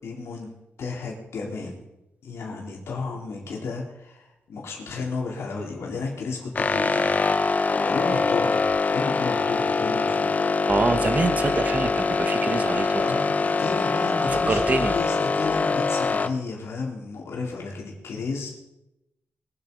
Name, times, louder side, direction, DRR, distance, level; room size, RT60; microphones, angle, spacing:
voice 1, 0.0-0.5 0.8-1.8 2.2-7.6 7.8-10.3 13.0-13.3 13.6-18.5, left 4 dB, 90° left, -2 dB, 3.7 m, -32 dB
sound 1, 6.6-16.3, left 4 dB, 40° left, 0.8 m, -23 dB
voice 2, 10.7-13.0 14.3-14.9, right 3 dB, 35° right, 8 dB, 1.3 m, -25 dB
22.5 x 8.7 x 5.4 m, 0.90 s
wide cardioid pair, 120°, 4 cm